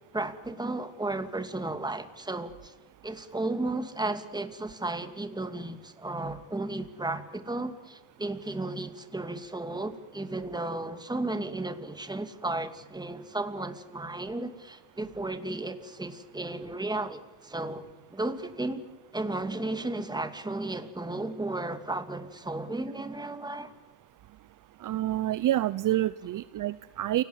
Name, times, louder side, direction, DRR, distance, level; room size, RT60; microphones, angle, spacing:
voice 1, 0.1-2.7 3.0-17.9 18.1-18.8 19.1-23.7, right 2 dB, 10° right, 9 dB, 2.5 m, -34 dB
voice 2, 24.8-27.2, right 13 dB, 45° right, 16 dB, 0.7 m, -28 dB
29.0 x 19.0 x 7.5 m, 1.1 s
supercardioid pair, 95°, 43 cm